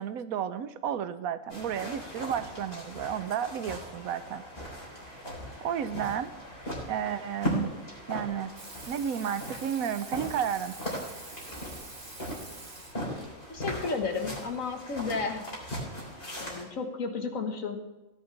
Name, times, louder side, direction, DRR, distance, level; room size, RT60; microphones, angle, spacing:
voice 1, 0.0-4.5 4.8-5.0 5.6-6.3 6.9-7.7 8.1-8.5 8.9-10.8, right 8 dB, 80° right, 12 dB, 1.1 m, -32 dB
sound 1, 1.5-16.6, equal, 45° left, 3.8 m, -39 dB
Water tap faucet / Sink (filling or washing), 8.6-13.3 14.8-14.9, right 3 dB, 40° right, 1.8 m, -46 dB
voice 2, 13.5-15.5 16.4-17.8, left 4 dB, 70° left, 5 dB, 1.8 m, -32 dB
16.5 x 10.5 x 3.3 m, 1.0 s
omnidirectional pair, 1.5 m